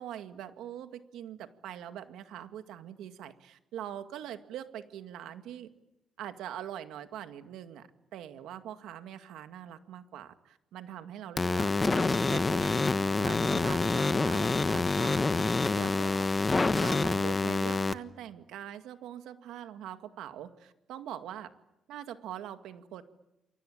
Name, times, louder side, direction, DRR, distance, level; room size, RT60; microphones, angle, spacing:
voice 1, 0.0-5.7 6.2-12.7 13.2-15.5 15.7-16.3 16.7-21.5 21.9-23.0, right 10 dB, 85° right, 9 dB, 2.1 m, -43 dB
sound 1, 11.4-17.9, left 3 dB, 25° left, 1.3 m, -27 dB
28.5 x 23.5 x 8.8 m, 0.91 s
cardioid pair, 90°, 0 cm